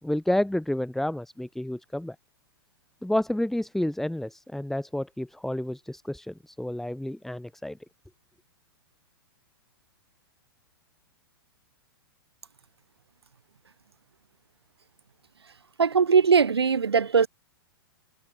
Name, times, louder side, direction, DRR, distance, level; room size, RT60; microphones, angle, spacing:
voice 1, 0.0-2.2 3.0-7.8, left 1 dB, ahead, 5.4 m, -30 dB
voice 2, 15.8-17.3, right 6 dB, 85° right, 4.1 m, -20 dB
hypercardioid pair, 115°, 13 cm